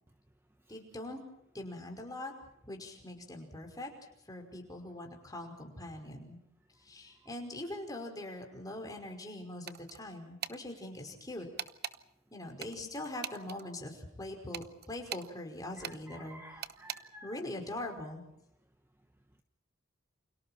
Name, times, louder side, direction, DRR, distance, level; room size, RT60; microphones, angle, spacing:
voice 1, 0.7-1.2 1.5-2.3 2.7-3.9 4.3-6.4 6.8-11.5 12.3-16.4 17.2-18.2, left 1 dB, 20° left, 2 dB, 5.4 m, -42 dB
sound 1, 9.7-10.0 10.4-10.6 11.6-12.0 12.6-13.6 14.5-15.3 15.8-16.0 16.6-17.0, right 9 dB, 50° right, 0.9 m, -40 dB
voice 2, 15.8-17.4, right 1 dB, 10° right, 6 dB, 1.1 m, -52 dB
29.5 x 28.0 x 4.4 m, 0.77 s
head